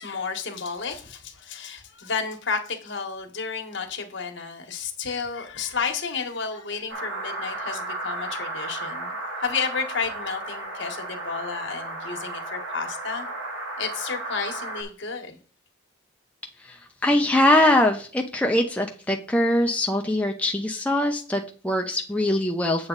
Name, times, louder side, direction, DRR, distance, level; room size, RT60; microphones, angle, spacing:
voice 1, 0.0-13.3 13.8-15.4, left 5 dB, 65° left, 1.5 m, -32 dB
sound 1, 6.9-14.8, right 2 dB, 65° right, 3.2 m, -34 dB
voice 2, 16.6-22.9, left 1 dB, 5° left, 0.6 m, -22 dB
8.4 x 7.1 x 4.0 m
head